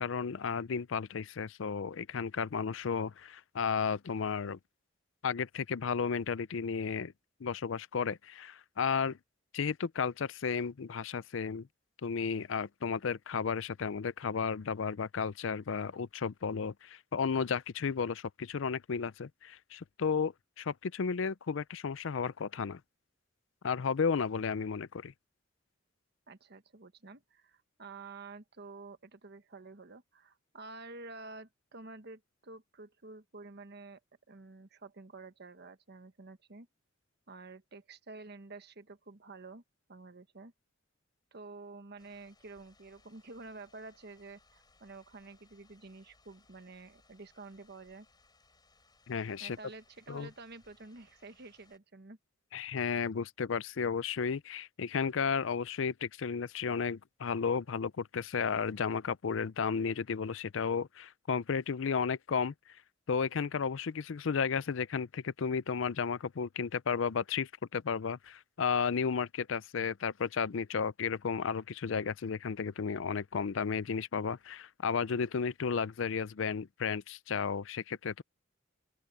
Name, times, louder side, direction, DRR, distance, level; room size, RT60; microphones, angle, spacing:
voice 1, 0.0-4.6 5.2-7.1 7.4-9.2 9.5-11.7 12.0-22.8 23.6-25.1 49.1-49.6 50.1-50.3 52.5-62.5 63.1-78.2, left 6 dB, 75° left, 0.5 m, -33 dB
voice 2, 26.3-34.0 34.3-36.7 37.3-39.6 39.9-40.5 41.3-48.1 49.4-52.2, right 3 dB, 55° right, 1.3 m, -50 dB
sound 1, 42.0-51.8, left 3 dB, 20° left, 5.5 m, -67 dB
open air
head